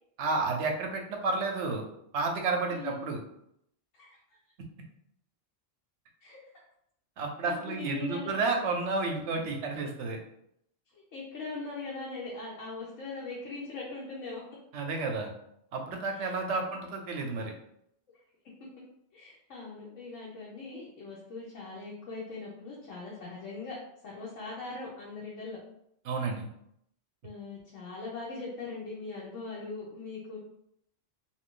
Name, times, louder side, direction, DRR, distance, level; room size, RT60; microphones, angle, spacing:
voice 1, 0.2-1.9 2.1-3.2 7.2-10.2 14.7-15.3 15.7-17.5 26.0-26.5, right 3 dB, 70° right, 2 dB, 0.9 m, -31 dB
voice 2, 2.7-3.0 3.9-4.1 6.2-6.4 7.4-8.3 10.9-14.4 16.1-16.3 16.7-16.8 19.1-23.8 24.0-25.6 27.2-30.4, left 3 dB, 90° left, -5 dB, 1.1 m, -40 dB
2.6 x 2.4 x 3.7 m, 0.75 s
omnidirectional pair, 1.3 m